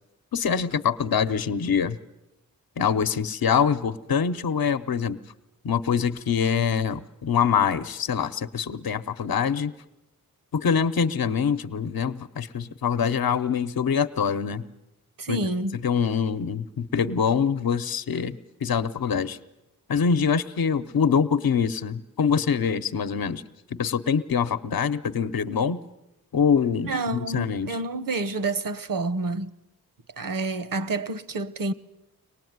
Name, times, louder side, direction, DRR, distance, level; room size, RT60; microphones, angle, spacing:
voice 1, 0.3-2.0 2.8-5.2 5.6-9.7 10.5-14.6 15.3-15.4 15.8-19.4 19.9-23.4 23.7-25.8 26.3-27.7, left 7 dB, 75° left, 0.9 m, -24 dB
voice 2, 15.2-15.8 26.8-29.5 30.2-31.7, right 2 dB, 65° right, 1.0 m, -28 dB
24.0 x 19.5 x 9.5 m
wide cardioid pair, 95°, 36 cm